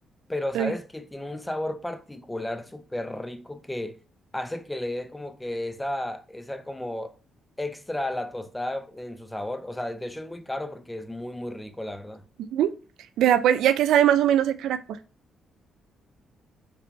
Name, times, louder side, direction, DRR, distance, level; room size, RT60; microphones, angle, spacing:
voice 1, 0.3-4.0 4.3-7.1 7.6-12.2, left 1 dB, 10° left, 0.5 m, -33 dB
voice 2, 13.2-15.0, right 10 dB, 80° right, 0.3 m, -21 dB
5.1 x 3.2 x 3.2 m
cardioid pair, 90°, 0 cm